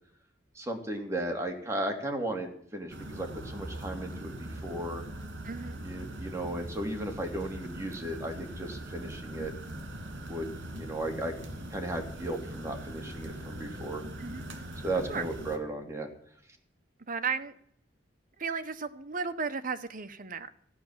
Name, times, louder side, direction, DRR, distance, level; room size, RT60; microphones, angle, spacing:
voice 1, 0.5-5.1 5.8-9.5 10.3-10.5 10.7-11.3 11.7-14.0 14.8-16.1, right 1 dB, 15° right, 2 dB, 2.6 m, -35 dB
sound 1, 2.9-15.6, right 1 dB, 75° right, 2.4 m, -41 dB
voice 2, 5.4-5.8 14.2-14.5 15.1-15.3 17.1-17.5 18.4-20.5, right 5 dB, 45° right, 10 dB, 1.1 m, -34 dB
15.0 x 10.0 x 7.4 m, 0.66 s
head